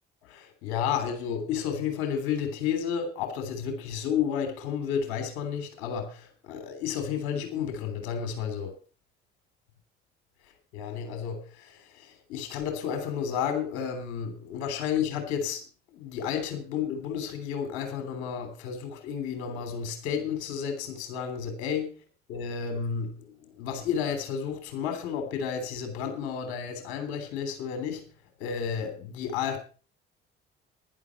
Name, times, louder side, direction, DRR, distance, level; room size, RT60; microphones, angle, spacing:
voice 1, 0.3-8.7 10.7-15.6 15.9-21.9 22.3-28.0 28.4-29.6, left 7 dB, 70° left, 3.3 m, -32 dB
11.0 x 10.5 x 5.9 m
hypercardioid pair, 50°, 32 cm